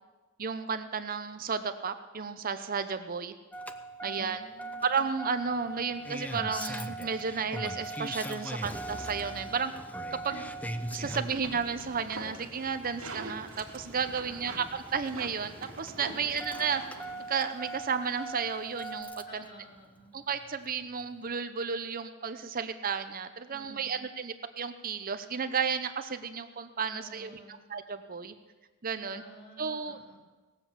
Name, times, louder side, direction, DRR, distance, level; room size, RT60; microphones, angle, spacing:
voice 1, 0.4-3.3 4.0-4.4 4.8-9.7 10.1-10.4 10.9-16.8 17.3-19.4 20.1-27.4 27.7-28.3 28.8-29.2 29.6-30.2, right 6 dB, 45° right, 9 dB, 0.7 m, -33 dB
Engine starting, 3.5-19.4 20.7-20.8, right 1 dB, 5° left, 0.6 m, -41 dB
voice 2, 4.0-4.9 10.3-10.5 11.0-11.3 14.2-14.6 16.2-16.3 16.7-16.8 19.3-20.2 23.5-24.0 26.9-27.6 29.1-30.2, right 1 dB, 55° left, -1 dB, 3.5 m, -52 dB
sound 1, 11.0-19.0, right 3 dB, 90° right, 1.8 m, -46 dB
18.5 x 7.5 x 7.3 m, 1.2 s
head